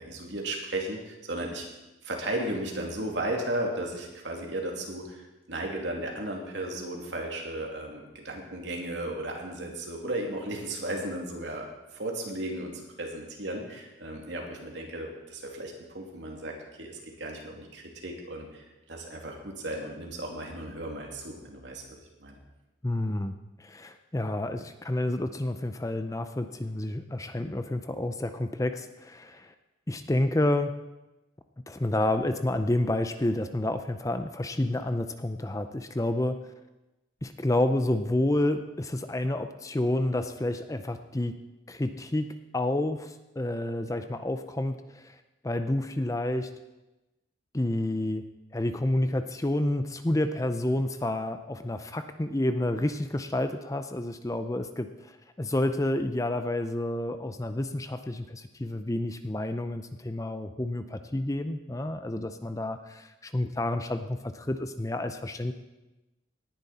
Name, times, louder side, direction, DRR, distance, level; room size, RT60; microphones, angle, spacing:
voice 1, 0.0-1.6 2.0-5.2 5.5-11.7 11.9-18.6 18.9-22.4, right 1 dB, 70° right, 0 dB, 2.6 m, -35 dB
voice 2, 22.8-23.3 23.6-29.5 29.9-30.7 31.7-36.4 37.2-41.3 41.7-42.3 42.5-45.2 45.4-46.5 47.5-48.2 48.5-55.1 55.4-65.5, left 1 dB, 15° left, 9 dB, 0.5 m, -29 dB
18.5 x 10.5 x 4.2 m, 1.0 s
head